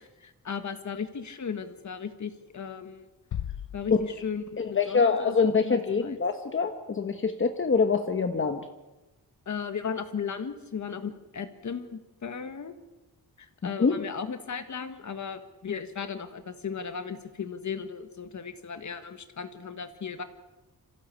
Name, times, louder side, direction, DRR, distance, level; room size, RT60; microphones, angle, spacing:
voice 1, 0.0-3.0 3.7-6.2 9.4-12.7 13.4-20.2, left 6 dB, 50° left, 8 dB, 1.6 m, -36 dB
sound 1, 3.3-4.9, left 10 dB, 85° left, 1.0 m, -38 dB
voice 2, 4.6-8.6 13.8-14.0, left 5 dB, 35° left, 6 dB, 1.1 m, -25 dB
26.5 x 15.5 x 8.4 m, 1.1 s
wide cardioid pair, 175°, 37 cm